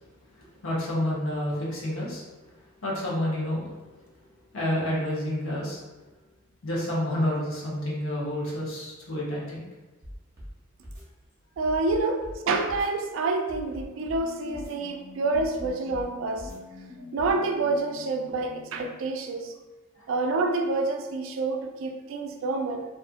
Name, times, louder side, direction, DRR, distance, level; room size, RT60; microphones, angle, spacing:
voice 1, 0.6-2.2 2.8-3.7 4.5-5.8 6.6-9.7 20.0-20.1, left 1 dB, 80° left, -5 dB, 0.8 m, -29 dB
sound 1, 10.0-10.5 10.8-11.0 11.6-12.4 12.7-12.9 13.5-14.2 14.5-14.7 15.3-16.1 16.4-16.6 17.2-17.3, equal, 15° right, 0.7 m, -41 dB
voice 2, 11.6-16.5 17.1-19.5 20.1-22.9, right 3 dB, 65° right, 5 dB, 0.3 m, -28 dB
sound 2, 13.9-19.1, left 3 dB, 40° left, 0.4 m, -47 dB
2.5 x 2.4 x 2.5 m, 1.2 s
head